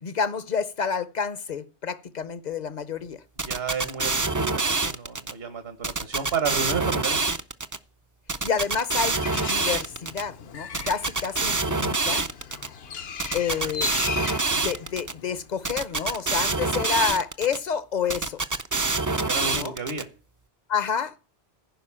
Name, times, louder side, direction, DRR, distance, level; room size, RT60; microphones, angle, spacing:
voice 1, 0.0-3.2 8.4-12.3 13.3-13.9 14.6-18.4 19.5-19.7 20.7-21.1, left 6 dB, 45° left, 0.8 m, -29 dB
sound 1, 3.4-5.3 5.8-7.8 8.3-10.2 10.7-12.7 13.2-15.1 15.6-17.6 18.1-20.0, right 3 dB, 25° right, 0.5 m, -26 dB
voice 2, 3.4-7.3 13.5-13.7 19.1-20.1, right 6 dB, 65° right, 1.6 m, -31 dB
Bird, 9.1-15.6, left 6 dB, 70° left, 1.1 m, -37 dB
15.5 x 5.3 x 7.4 m
omnidirectional pair, 1.1 m